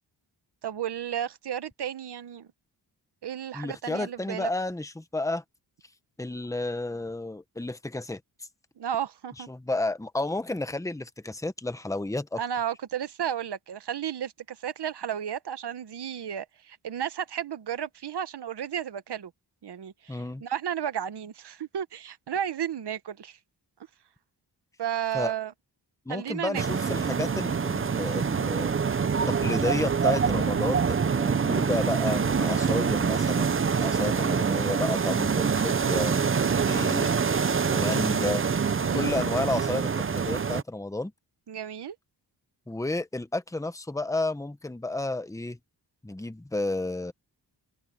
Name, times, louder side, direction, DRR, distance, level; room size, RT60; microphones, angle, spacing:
voice 1, 0.6-2.5 3.2-4.5 8.8-9.5 12.3-19.3 19.6-23.4 24.8-25.5 26.1-26.6 36.3-36.7 38.8-39.2 41.5-42.0, right 9 dB, 70° right, 1.2 m, -33 dB
voice 2, 3.5-5.4 6.2-8.2 9.5-12.4 20.1-20.4 25.1-25.3 26.0-28.8 29.3-37.1 37.7-38.4 38.9-41.1 42.7-45.6 46.0-47.1, left 2 dB, 10° left, 1.2 m, -31 dB
sound 1, 26.5-40.6, right 6 dB, 30° right, 0.7 m, -25 dB
wide cardioid pair, 100°, 42 cm